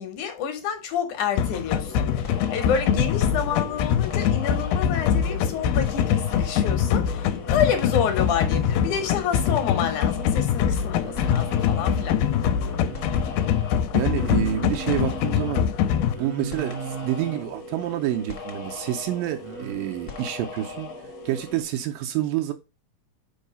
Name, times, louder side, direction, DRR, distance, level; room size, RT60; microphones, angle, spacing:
voice 1, 0.0-12.2, left 7 dB, 65° left, 2.3 m, -28 dB
sound 1, 1.4-16.1, left 9 dB, 85° left, 2.4 m, -23 dB
sound 2, 1.7-21.6, left 3 dB, 50° left, 1.5 m, -39 dB
Singing, 11.0-13.4 14.1-15.2 16.1-17.5 19.4-19.7, right 7 dB, 65° right, 1.7 m, -37 dB
voice 2, 13.9-15.6 16.2-20.9 21.3-22.5, right 13 dB, 80° right, 2.2 m, -28 dB
5.6 x 4.6 x 5.3 m
omnidirectional pair, 4.3 m